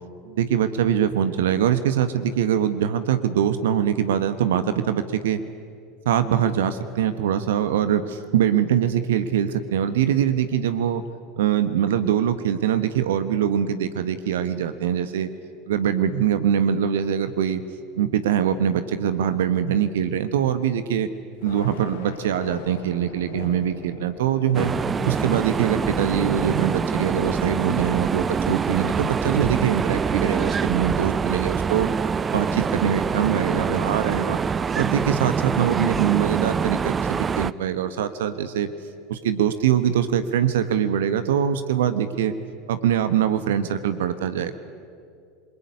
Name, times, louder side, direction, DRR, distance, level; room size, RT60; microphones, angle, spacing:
voice 1, 0.2-5.4 6.0-11.0 11.4-15.3 15.7-17.6 18.0-21.1 21.4-24.7 25.0-31.9 32.3-34.4 34.8-38.7 39.1-42.3 42.7-44.6, right 9 dB, 70° right, 11 dB, 1.3 m, -23 dB
Thunder, 21.3-27.5, left 6 dB, 65° left, 3.8 m, -41 dB
sound 1, 24.5-37.5, right 6 dB, 25° right, 0.7 m, -25 dB
27.5 x 22.0 x 9.7 m, 2.3 s
figure-of-eight pair, 80°, 0 cm